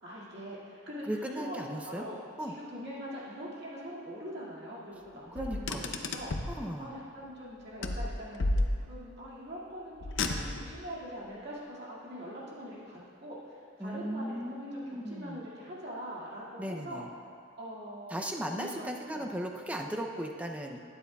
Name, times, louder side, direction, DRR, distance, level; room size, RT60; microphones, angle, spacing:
voice 1, 0.0-6.5 6.8-17.0 17.6-18.2 18.5-18.8 19.1-19.3, equal, 60° right, -7 dB, 2.1 m, -43 dB
voice 2, 1.1-2.1 2.4-2.5 5.3-6.0 6.6-6.9 13.8-15.4 16.6-17.1 18.1-20.8, equal, 5° right, 2 dB, 0.5 m, -37 dB
Car, 5.4-6.6 7.8-9.1 10.0-10.8, left 2 dB, 70° left, 0.6 m, -32 dB
12.0 x 9.5 x 2.3 m, 2.3 s
head